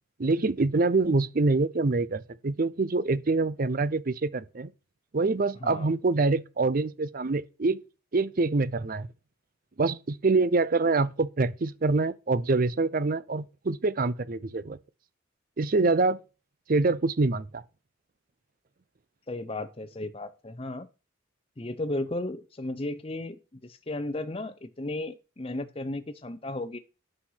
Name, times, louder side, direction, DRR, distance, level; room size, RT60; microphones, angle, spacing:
voice 1, 0.2-4.7 5.1-7.8 8.1-9.1 9.8-14.8 15.6-16.2 16.7-17.6, right 3 dB, 45° right, 0.5 m, -25 dB
voice 2, 19.3-20.9 21.6-26.8, left 2 dB, 25° left, 0.7 m, -34 dB
8.9 x 6.4 x 5.7 m
head